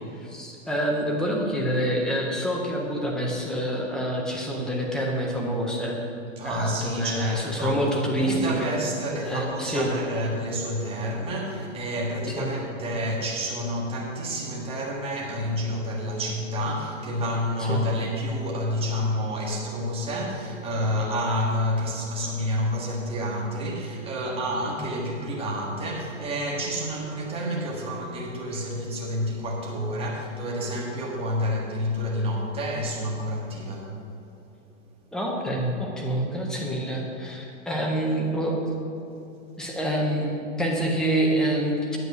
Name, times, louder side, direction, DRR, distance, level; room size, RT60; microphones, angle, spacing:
voice 1, 0.2-6.0 6.4-8.8 9.2-10.0 12.4-12.6 17.6-17.9 35.1-38.6 39.6-42.0, right 1 dB, ahead, -2 dB, 0.4 m, -27 dB
voice 2, 6.4-7.8 8.2-33.9, equal, 15° right, -3 dB, 1.6 m, -29 dB
9.4 x 7.7 x 6.0 m, 2.8 s
hypercardioid pair, 150°, 38 cm